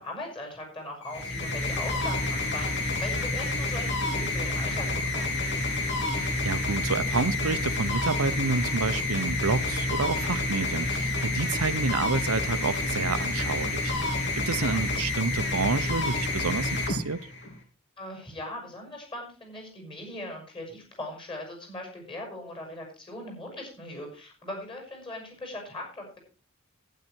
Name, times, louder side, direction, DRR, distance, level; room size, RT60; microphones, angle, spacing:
voice 1, 0.0-5.3 14.6-14.8 18.0-26.2, left 1 dB, 25° left, 6.1 m, -40 dB
sound 1, 1.0-17.6, left 2 dB, 55° left, 2.8 m, -29 dB
voice 2, 6.1-17.2, right 4 dB, 85° right, 0.9 m, -29 dB
12.0 x 10.0 x 4.6 m
head